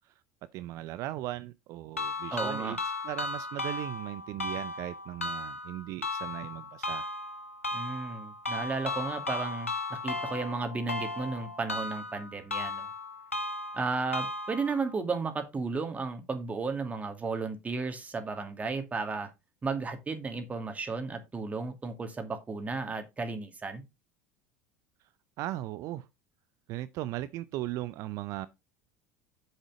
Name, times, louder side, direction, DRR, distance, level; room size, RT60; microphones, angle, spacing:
voice 1, 0.5-2.8 3.0-7.1 25.4-26.1 26.7-28.5, right 15 dB, 50° right, 0.6 m, -37 dB
sound 1, 2.0-14.9, left 2 dB, 85° left, 1.1 m, -36 dB
voice 2, 2.3-2.8 7.7-12.9 13.7-19.3 19.6-23.8, right 4 dB, 20° right, 2.4 m, -34 dB
8.0 x 7.7 x 3.7 m
figure-of-eight pair, 70°, 7 cm